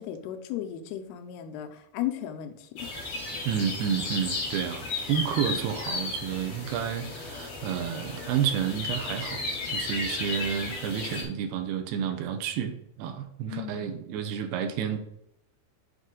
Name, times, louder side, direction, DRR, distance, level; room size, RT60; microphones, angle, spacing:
voice 1, 0.0-2.9 13.5-14.0, left 11 dB, 85° left, 7 dB, 2.7 m, -35 dB
sound 1, 2.8-11.2, left 3 dB, 50° left, 3.2 m, -34 dB
voice 2, 3.5-15.0, right 8 dB, 80° right, 7 dB, 2.7 m, -30 dB
8.0 x 4.8 x 3.7 m, 0.80 s
omnidirectional pair, 4.6 m